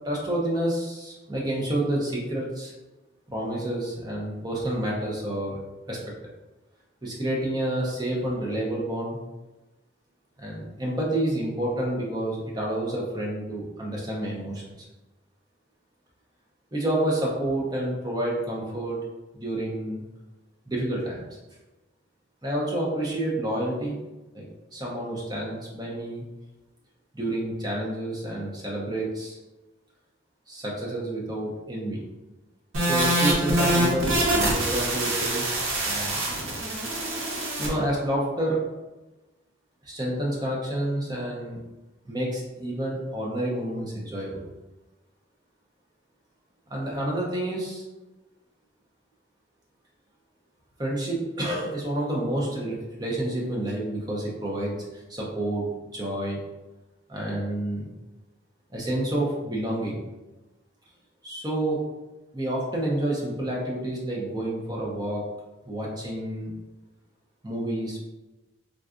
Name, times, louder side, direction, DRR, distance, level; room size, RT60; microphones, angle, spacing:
voice 1, 0.0-2.7 3.3-5.6 5.9-6.0 7.0-9.2 10.4-14.7 16.7-19.0 19.3-20.0 20.7-21.2 22.4-24.0 24.3-24.4 24.7-26.2 27.1-29.4 30.5-32.0 32.8-35.6 35.9-36.3 37.6-38.6 39.8-41.6 42.0-44.4 46.7-47.8 50.8-54.8 55.1-56.4 57.1-57.9 58.7-60.0 61.2-61.8 62.3-65.3 65.7-66.5 67.4-68.0, right 1 dB, 20° right, -3 dB, 0.6 m, -29 dB
sound 1, 32.7-37.7, right 1 dB, 85° right, 0.8 m, -25 dB
3.7 x 2.3 x 2.4 m, 1.1 s
head